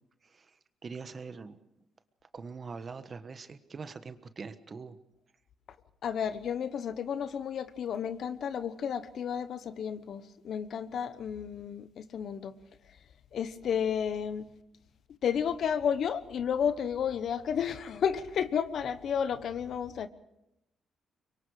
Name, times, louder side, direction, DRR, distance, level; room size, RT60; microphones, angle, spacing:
voice 1, 0.2-1.6 2.3-5.0, right 5 dB, 40° right, 1.3 m, -43 dB
voice 2, 6.0-12.5 13.3-14.5 15.2-20.1, left 8 dB, 65° left, 1.1 m, -32 dB
25.0 x 23.5 x 5.0 m
cardioid pair, 90°, 0 cm